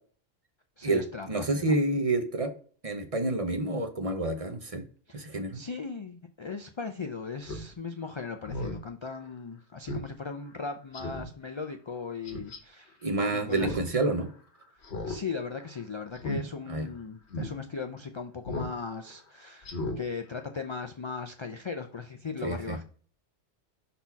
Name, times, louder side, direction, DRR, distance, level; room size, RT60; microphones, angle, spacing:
voice 1, 0.8-1.7 5.1-13.0 13.3-14.0 15.0-22.8, left 5 dB, 45° left, 6 dB, 0.4 m, -38 dB
voice 2, 1.3-2.5 2.8-4.8 5.1-5.6 13.0-14.3 16.7-16.9 22.4-22.8, right 2 dB, 35° right, 6 dB, 0.8 m, -28 dB
Speech synthesizer, 7.4-7.6 8.0-8.1 8.4-8.8 9.2-9.3 9.9-10.1 10.4-10.5 10.9-11.3 12.2-12.6 13.5-13.9 14.2-14.3 14.8-15.2 15.5-15.7 16.1-16.4 16.8-16.9 17.3-17.5 18.4-18.7 19.1-19.2 19.6-20.0 20.3-20.4, left 1 dB, 80° left, 1.5 m, -35 dB
5.6 x 4.3 x 4.6 m, 0.43 s
omnidirectional pair, 1.1 m